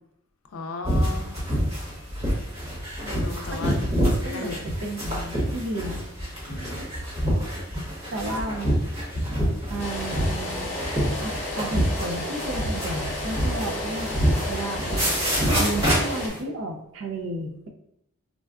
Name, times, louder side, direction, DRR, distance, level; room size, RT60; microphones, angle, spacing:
voice 1, 0.5-1.4 3.0-3.7 4.3-4.6 6.5-6.9, left 3 dB, 80° left, 6 dB, 0.4 m, -36 dB
sound 1, 0.8-16.4, equal, 30° right, 1.2 m, -27 dB
voice 2, 3.5-3.9 4.2-6.0 8.1-8.8 9.7-10.7 11.2-15.2 15.6-17.7, right 1 dB, 60° right, 3 dB, 0.5 m, -33 dB
sound 2, 9.8-16.3, left 1 dB, 35° left, 0.9 m, -32 dB
3.7 x 2.2 x 2.3 m, 0.78 s
head